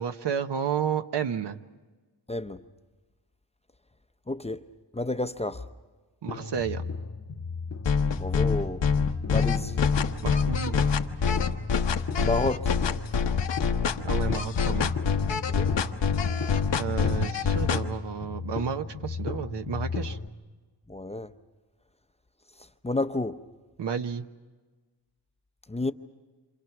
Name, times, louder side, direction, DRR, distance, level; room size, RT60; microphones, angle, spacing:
voice 1, 0.0-1.6 6.2-6.9 10.2-10.9 14.0-14.9 16.8-20.2 23.8-24.3, right 7 dB, 70° right, 1.1 m, -31 dB
voice 2, 2.3-2.6 4.3-4.7 4.9-5.6 8.2-8.9 9.2-9.8 12.2-12.7 15.5-15.8 20.9-21.3 22.6-23.4 25.7-25.9, left 2 dB, 15° left, 0.7 m, -30 dB
sound 1, 6.3-20.3, left 5 dB, 40° left, 1.0 m, -34 dB
sound 2, 7.9-17.8, left 6 dB, 80° left, 1.2 m, -25 dB
28.0 x 27.5 x 6.0 m
wide cardioid pair, 105°, 43 cm